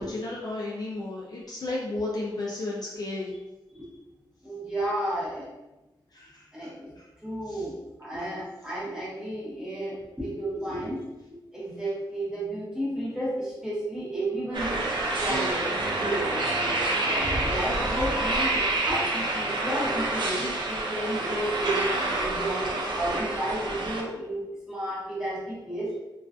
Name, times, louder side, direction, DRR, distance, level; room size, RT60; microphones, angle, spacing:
voice 1, 0.0-3.3 6.1-6.3, left 2 dB, 55° left, -3 dB, 0.4 m, -32 dB
voice 2, 4.4-5.5 6.5-6.9 7.2-7.7 8.0-16.3 16.6-25.9, right 1 dB, 5° right, -8 dB, 1.0 m, -32 dB
sound 1, 14.5-24.0, right 2 dB, 75° right, 0.4 m, -28 dB
2.3 x 2.3 x 2.3 m, 1.0 s
wide cardioid pair, 125°, 8 cm